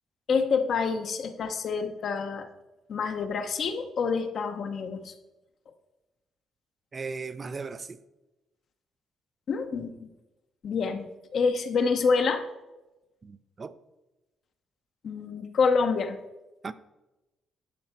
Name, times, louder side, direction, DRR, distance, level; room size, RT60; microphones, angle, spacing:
voice 1, 0.3-2.5 2.9-5.1 9.5-10.1 10.6-12.4 15.0-16.2, left 5 dB, 60° left, 0.9 m, -27 dB
voice 2, 6.9-8.0 13.2-13.7 16.6-16.7, right 4 dB, 35° right, 0.5 m, -37 dB
11.5 x 5.5 x 4.5 m
cardioid pair, 90°, 0 cm